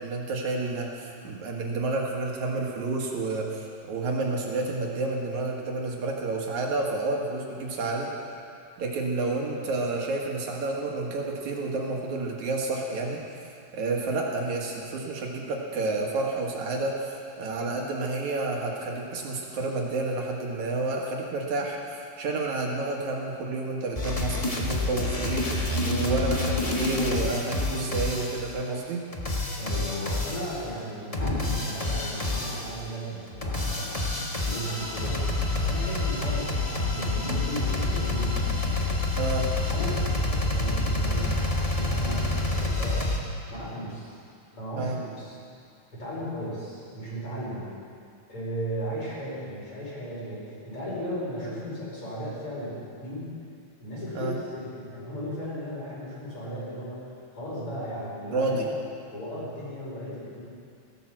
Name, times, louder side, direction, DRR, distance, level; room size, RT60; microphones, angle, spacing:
voice 1, 0.0-8.1 8.8-13.2 13.7-29.1 39.1-39.5 44.8-45.0 54.1-54.4 58.3-58.7, right 3 dB, 75° right, -1 dB, 3.1 m, -30 dB
sound 1, 23.9-28.5 29.1-30.6 31.1-32.8 33.3-43.2, left 2 dB, 75° left, 0.3 m, -28 dB
Growling, 25.5-27.5 29.9-31.7 31.9-32.8 33.4-34.3 34.8-35.8 36.1-36.2 36.4-37.7 38.2-39.0 39.7-40.1 40.5-41.7 42.0-42.3, left 1 dB, 20° left, 1.9 m, -41 dB
voice 2, 29.6-34.0 34.4-35.2 35.6-39.0 39.7-43.1 43.5-44.2 44.5-45.4 45.9-47.7 48.3-53.3 53.8-58.6 59.1-60.4, equal, 45° left, -7 dB, 5.9 m, -36 dB
15.5 x 12.0 x 7.6 m, 2.4 s
omnidirectional pair, 3.4 m